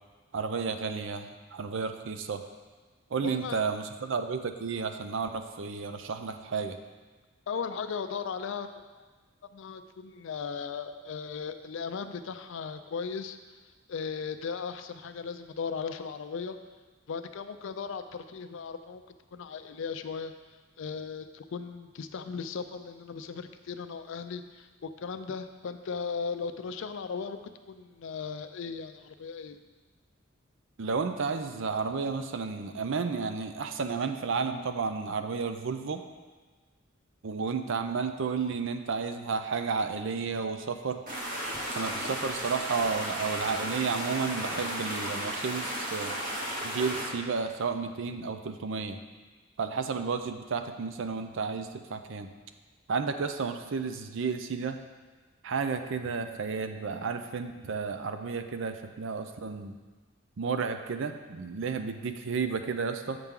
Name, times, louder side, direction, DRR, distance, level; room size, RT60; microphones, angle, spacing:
voice 1, 0.3-2.4 3.1-6.8 30.8-36.0 37.2-41.0 41.7-46.1 46.6-49.0 49.6-52.3 52.9-54.8 55.4-59.8 60.4-63.2, right 5 dB, 65° right, 8 dB, 0.5 m, -32 dB
voice 2, 3.2-3.7 7.5-9.1 9.5-13.4 13.9-16.6 17.1-19.0 19.3-20.3 20.8-27.4 27.7-29.6, left 5 dB, 65° left, 10 dB, 0.4 m, -37 dB
sound 1, 41.1-47.1, right 1 dB, 45° right, 1.4 m, -34 dB
8.0 x 5.8 x 3.7 m, 1.4 s
head